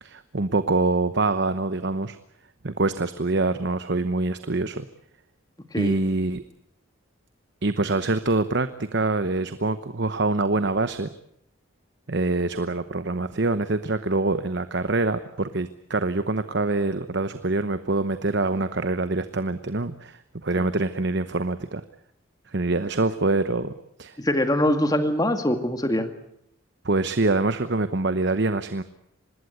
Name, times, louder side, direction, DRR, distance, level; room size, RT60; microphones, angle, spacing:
voice 1, 0.0-2.2 2.6-4.9 5.8-6.4 7.6-11.1 12.1-21.8 22.5-24.2 26.8-28.8, right 2 dB, 55° right, 11 dB, 1.0 m, -25 dB
voice 2, 24.2-26.1, left 1 dB, 20° left, 7 dB, 2.1 m, -23 dB
26.0 x 20.0 x 8.1 m, 0.70 s
head